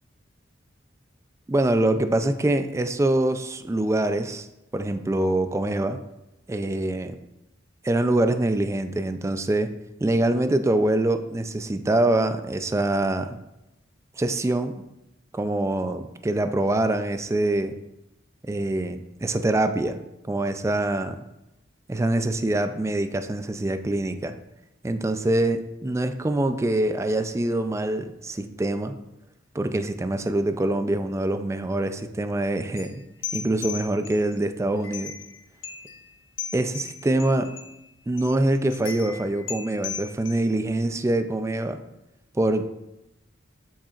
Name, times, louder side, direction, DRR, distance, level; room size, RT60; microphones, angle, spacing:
voice 1, 1.5-4.5 4.7-6.0 6.5-7.2 7.8-9.7 10.0-13.4 14.2-14.7 15.3-17.7 18.4-20.0 20.3-21.2 21.9-24.3 24.8-29.0 29.5-33.0 33.3-35.1 36.5-37.5 38.1-41.8 42.3-42.6, right 1 dB, 15° right, 9 dB, 0.3 m, -24 dB
sound 1, 32.8-34.4 34.8-35.4 35.6-36.1 36.4-37.8 38.2-38.3 38.7-40.7, left 7 dB, 85° left, 0.9 m, -37 dB
7.4 x 7.2 x 2.4 m, 0.90 s
head